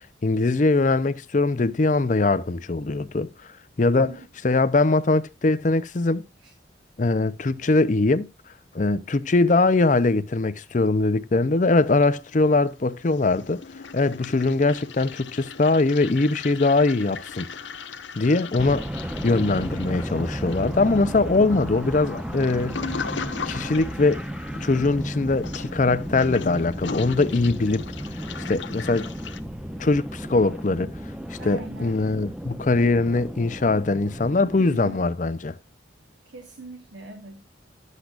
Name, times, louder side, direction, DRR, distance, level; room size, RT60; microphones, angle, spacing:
voice 1, 0.2-3.3 3.8-4.1 4.4-6.2 7.0-8.3 8.7-13.6 13.9-17.5 18.1-22.8 23.5-24.3 24.6-27.9 28.5-29.1 29.8-30.9 31.3-35.5, left 3 dB, 40° left, 0.5 m, -22 dB
Toilet flush, 11.8-12.7 12.9-29.4, left 5 dB, 70° left, 0.8 m, -39 dB
sound 1, 18.6-34.6, equal, 5° right, 0.6 m, -34 dB
voice 2, 31.4-32.0 34.6-35.1 36.3-37.5, right 2 dB, 75° right, 1.3 m, -41 dB
12.0 x 8.1 x 2.4 m
head